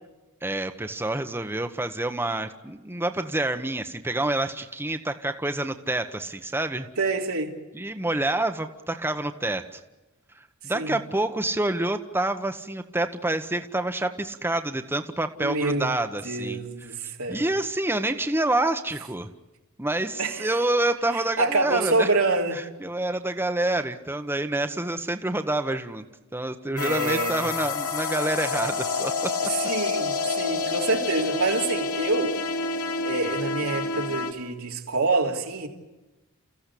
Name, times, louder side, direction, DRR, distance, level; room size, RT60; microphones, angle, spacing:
voice 1, 0.4-6.9 7.7-9.8 10.6-16.6 17.3-19.3 19.8-22.1 22.5-26.0 26.3-29.1, right 2 dB, 10° right, 1.1 m, -27 dB
voice 2, 7.0-7.5 10.7-11.0 15.4-15.9 16.2-17.5 20.2-20.5 21.4-22.6 26.7-27.6 29.4-32.4 33.0-35.7, right 3 dB, 85° right, 3.1 m, -26 dB
sound 1, 26.8-34.3, left 4 dB, 90° left, 2.4 m, -28 dB
30.0 x 15.0 x 8.4 m
head